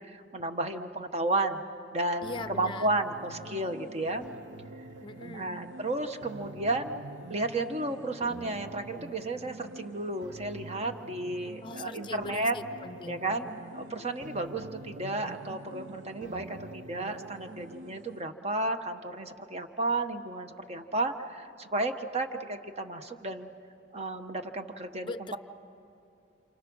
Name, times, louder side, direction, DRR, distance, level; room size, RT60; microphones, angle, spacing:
voice 1, 0.0-1.6 1.9-4.3 5.3-7.0 7.3-12.6 13.1-23.5 23.9-25.1, right 2 dB, 35° right, 7 dB, 1.1 m, -33 dB
voice 2, 2.2-2.9 5.0-5.5 11.6-13.2 25.0-25.4, left 3 dB, 25° left, 11 dB, 0.6 m, -40 dB
sound 1, 2.2-18.2, right 2 dB, 75° right, 0.7 m, -46 dB
29.0 x 28.0 x 6.2 m, 2.8 s
head